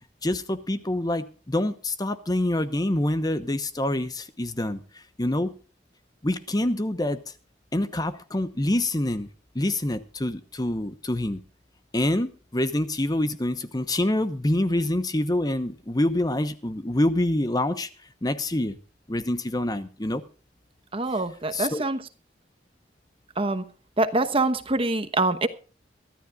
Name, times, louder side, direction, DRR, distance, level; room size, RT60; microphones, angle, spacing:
voice 1, 0.2-5.5 6.2-7.2 7.7-9.3 9.5-11.4 11.9-17.9 18.2-18.8 19.1-20.2 21.5-21.8, left 1 dB, 20° left, 1.0 m, -26 dB
voice 2, 20.9-22.0 23.4-23.6 24.0-25.5, right 2 dB, 30° right, 1.1 m, -25 dB
24.0 x 13.5 x 2.4 m
head